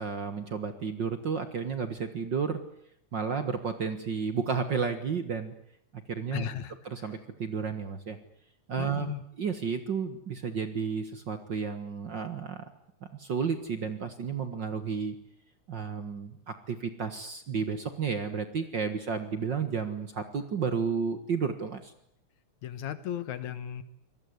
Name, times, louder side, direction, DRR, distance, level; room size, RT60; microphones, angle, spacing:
voice 1, 0.0-2.6 3.1-5.5 5.9-6.5 6.9-8.2 8.7-12.6 13.1-15.2 15.7-21.9, right 6 dB, 45° right, 9 dB, 1.7 m, -32 dB
voice 2, 6.3-6.8 8.8-9.2 22.6-23.8, left 10 dB, 70° left, 13 dB, 2.7 m, -35 dB
26.0 x 19.0 x 9.6 m, 0.72 s
omnidirectional pair, 3.5 m